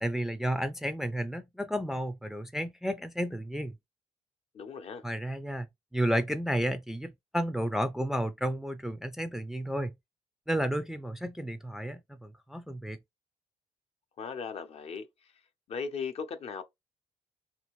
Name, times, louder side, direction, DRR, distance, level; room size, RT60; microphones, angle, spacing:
voice 1, 0.0-3.7 5.0-5.7 5.9-9.9 10.5-13.0, equal, 5° right, 0.3 m, -32 dB
voice 2, 4.5-5.0 14.2-15.1 15.7-16.6, left 5 dB, 55° left, 0.6 m, -37 dB
2.7 x 2.4 x 3.0 m
cardioid pair, 100°, 13 cm